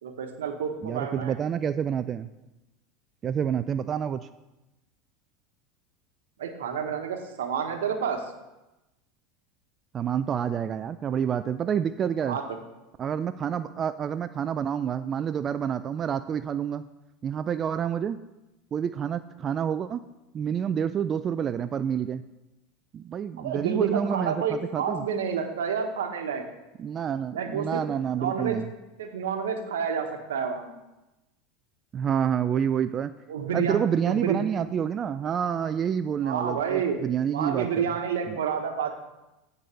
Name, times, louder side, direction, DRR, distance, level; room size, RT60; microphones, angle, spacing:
voice 1, 0.0-1.3 6.4-8.2 12.2-12.4 23.4-26.4 27.3-27.8 28.2-28.6 29.0-30.8 33.3-34.4 36.2-37.0 37.3-38.9, right 7 dB, 80° right, 5 dB, 1.1 m, -29 dB
voice 2, 0.8-2.3 3.2-4.2 9.9-12.4 13.0-16.9 17.2-18.2 18.7-20.0 20.3-22.2 22.9-25.0 26.8-28.7 31.9-33.1 33.5-37.9 38.3-38.4, right 8 dB, 35° right, 11 dB, 0.3 m, -28 dB
9.0 x 4.0 x 6.9 m, 1.0 s
hypercardioid pair, 90°, 0 cm